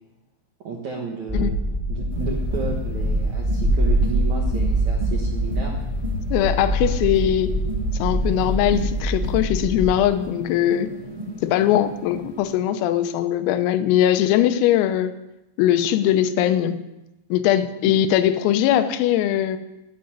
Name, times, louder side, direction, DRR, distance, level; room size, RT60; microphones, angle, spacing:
voice 1, 0.6-1.6 1.9-5.7 17.8-17.9, right 4 dB, 75° right, 0 dB, 1.7 m, -33 dB
sound 1, 1.3-10.0, right 1 dB, 20° left, 0.6 m, -24 dB
sound 2, 2.1-12.6, equal, 40° right, 0.4 m, -35 dB
voice 2, 6.3-7.5 8.0-10.9 11.4-15.1 15.6-16.8 17.3-19.6, left 11 dB, 85° left, 10 dB, 3.6 m, -20 dB
12.5 x 9.9 x 9.6 m, 0.96 s
omnidirectional pair, 6.0 m